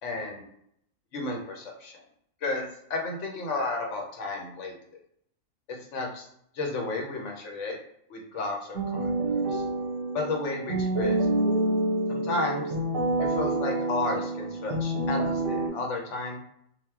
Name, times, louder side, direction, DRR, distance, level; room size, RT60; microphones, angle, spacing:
voice 1, 0.0-0.4 1.1-2.0 2.4-4.7 5.7-6.3 6.5-7.8 8.1-9.6 10.1-11.4 12.1-12.7 13.2-16.4, left 3 dB, 75° left, 1 dB, 1.0 m, -32 dB
sound 1, 8.7-15.7, right 2 dB, 90° right, 1.0 m, -27 dB
2.2 x 2.1 x 3.4 m, 0.71 s
omnidirectional pair, 1.3 m